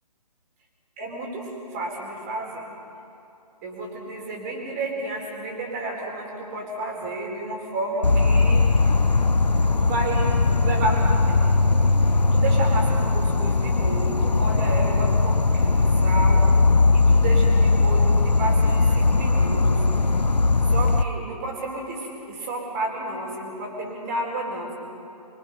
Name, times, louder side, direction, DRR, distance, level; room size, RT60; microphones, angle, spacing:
voice 1, 1.0-2.7 3.6-8.7 9.7-11.4 12.3-16.5 16.9-19.8 20.7-24.7, right 2 dB, 25° right, 0 dB, 4.3 m, -31 dB
Insect, 8.0-21.0, left 3 dB, 80° left, 0.8 m, -19 dB
25.0 x 24.5 x 5.5 m, 2.8 s
figure-of-eight pair, 140°, 21 cm